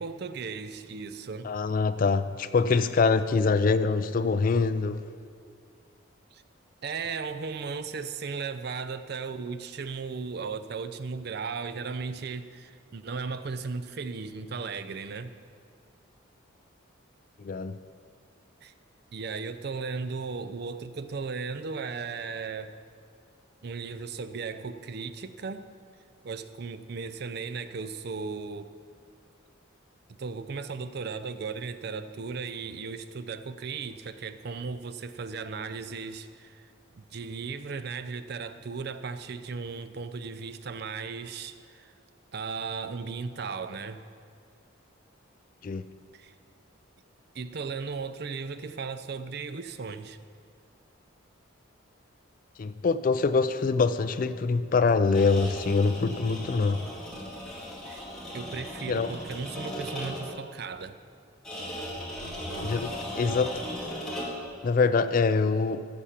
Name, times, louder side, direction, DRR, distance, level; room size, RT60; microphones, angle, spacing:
voice 1, 0.0-1.5 6.3-6.4 6.8-15.3 18.6-18.7 19.1-22.8 23.6-25.7 26.2-28.7 30.2-36.7 36.9-41.9 42.3-44.0 46.1-46.3 47.3-50.2 57.8-58.1 58.3-61.0, right 5 dB, 50° right, 12 dB, 0.5 m, -36 dB
voice 2, 1.4-5.0 17.4-17.8 45.6-45.8 52.6-56.9 58.9-59.1 62.6-63.6 64.6-65.9, left 4 dB, 40° left, 11 dB, 0.3 m, -24 dB
sound 1, 55.0-60.4 61.4-64.5, equal, 5° left, 2.1 m, -37 dB
14.5 x 6.9 x 5.8 m, 2.2 s
head